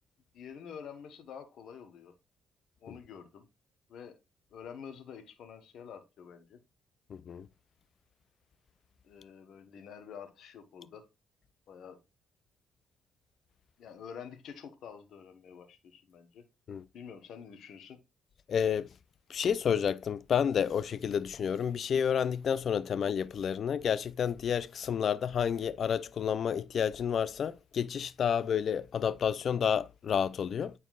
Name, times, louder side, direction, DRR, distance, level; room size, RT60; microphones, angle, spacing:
voice 1, 0.3-2.1 2.8-3.4 3.9-4.2 4.5-6.6 9.0-11.1 11.7-12.0 13.8-16.4 16.9-18.0, left 7 dB, 70° left, 1.2 m, -48 dB
voice 2, 7.1-7.5 16.7-16.8 18.5-18.9 19.3-30.7, left 8 dB, 55° left, 0.4 m, -30 dB
9.2 x 4.3 x 2.4 m
cardioid pair, 90°, 0 cm